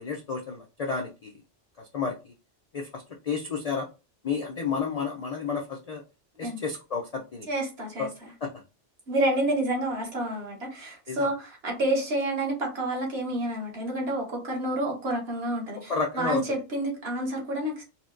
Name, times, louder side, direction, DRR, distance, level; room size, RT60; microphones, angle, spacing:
voice 1, 0.0-1.4 1.8-2.3 2.7-3.9 4.2-6.0 6.4-7.5 8.0-8.1 8.4-8.6 11.1-11.3 15.9-16.4, left 5 dB, 65° left, 0.3 m, -31 dB
voice 2, 7.5-8.3 9.1-17.8, right 1 dB, 60° right, 1.3 m, -29 dB
4.2 x 2.1 x 2.4 m
omnidirectional pair, 1.2 m